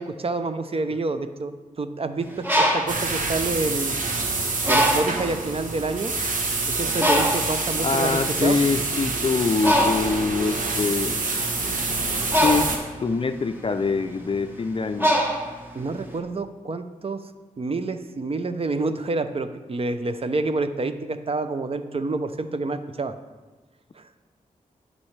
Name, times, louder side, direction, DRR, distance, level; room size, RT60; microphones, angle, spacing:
voice 1, 0.0-4.0 4.7-6.1 6.7-8.6 15.7-17.2 17.6-23.1 24.0-24.1, right 3 dB, 45° right, 10 dB, 0.6 m, -28 dB
Bird, 2.2-4.1 4.6-5.3 6.0-6.2 6.4-16.1, equal, 15° right, 1.2 m, -24 dB
sound 1, 2.9-12.8, right 3 dB, 70° right, 1.1 m, -27 dB
voice 2, 7.8-11.2 12.4-12.7 13.0-15.2, left 4 dB, 40° left, 9 dB, 0.4 m, -24 dB
12.0 x 5.3 x 3.3 m, 1.2 s
cardioid pair, 55°, 14 cm